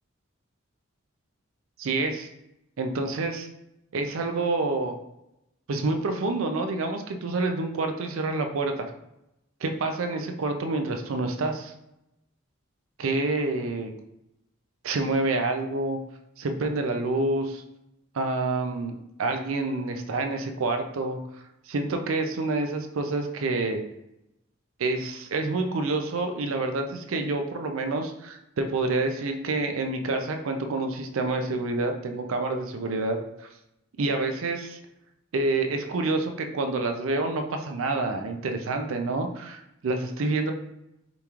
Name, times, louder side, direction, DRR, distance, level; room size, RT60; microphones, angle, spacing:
voice 1, 1.8-2.3 2.8-3.5 3.9-5.0 5.7-8.9 9.6-11.7 13.0-13.9 14.8-16.0 16.4-17.6 18.1-21.2 21.7-23.8 24.8-33.2 34.0-34.8 35.3-40.5, right 3 dB, 75° right, 5 dB, 0.5 m, -28 dB
5.1 x 3.0 x 2.4 m, 0.86 s
head